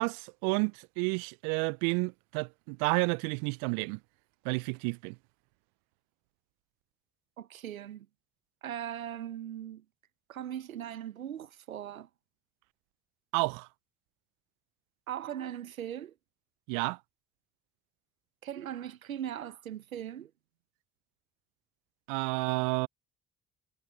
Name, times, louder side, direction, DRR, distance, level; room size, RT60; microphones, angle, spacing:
voice 1, 0.0-4.0 4.4-5.2 13.3-13.7 16.7-17.0 22.1-22.9, right 36 dB, 70° right, 0.5 m, -30 dB
voice 2, 7.4-8.1 8.6-9.8 10.3-12.1 15.1-16.1 18.4-20.3, right 10 dB, 90° right, 1.1 m, -39 dB
hypercardioid pair, 50°, 40 cm